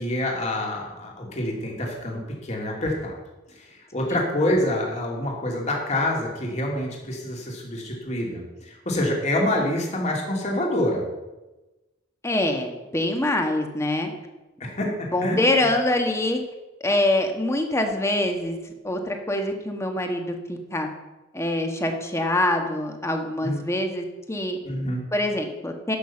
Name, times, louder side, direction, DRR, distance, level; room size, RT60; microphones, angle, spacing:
voice 1, 0.0-3.1 3.5-11.0 14.6-15.7 23.4-23.7 24.6-25.0, left 1 dB, 35° left, -1 dB, 2.6 m, -27 dB
voice 2, 12.2-14.1 15.1-16.4 16.8-18.6 18.8-20.9 21.3-24.6 25.1-26.0, left 1 dB, 15° left, 4 dB, 1.4 m, -24 dB
11.5 x 6.3 x 7.2 m, 1.1 s
head